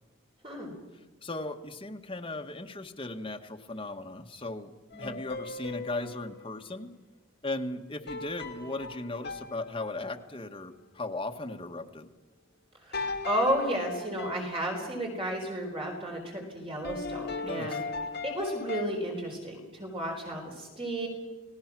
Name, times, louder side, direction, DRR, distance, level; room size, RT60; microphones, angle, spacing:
voice 1, 1.2-4.7 5.0-6.9 7.4-12.1 17.4-17.8, left 2 dB, 25° left, 3 dB, 1.6 m, -37 dB
sound 1, 4.9-6.4 8.1-10.3 12.9-15.0 16.8-18.8, left 3 dB, 50° left, 2.5 m, -38 dB
voice 2, 12.9-17.8 18.2-21.1, right 1 dB, 25° right, 1 dB, 4.3 m, -33 dB
30.0 x 19.0 x 6.2 m, 1.2 s
head